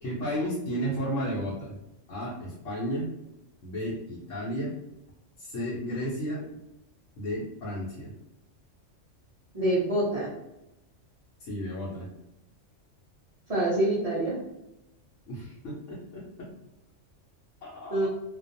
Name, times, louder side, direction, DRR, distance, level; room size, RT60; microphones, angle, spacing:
voice 1, 0.0-1.8 2.1-3.1 3.6-4.8 5.4-6.4 7.2-8.1 11.4-12.1 15.3-16.5 17.6-18.1, equal, 80° left, -7 dB, 1.0 m, -33 dB
voice 2, 9.5-10.3 13.5-14.4 17.9-18.1, right 1 dB, 40° right, -8 dB, 0.6 m, -26 dB
2.4 x 2.2 x 2.5 m, 0.88 s
omnidirectional pair, 1.3 m